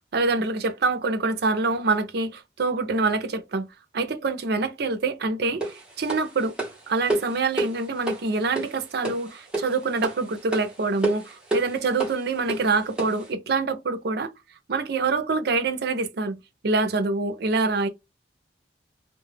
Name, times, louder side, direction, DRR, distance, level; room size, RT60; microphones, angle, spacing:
voice 1, 0.1-3.7 3.9-6.5 6.9-14.3 14.7-17.9, right 3 dB, 60° right, 0.5 m, -25 dB
sound 1, 5.6-13.3, right 2 dB, 5° right, 0.9 m, -31 dB
2.3 x 2.0 x 3.2 m
head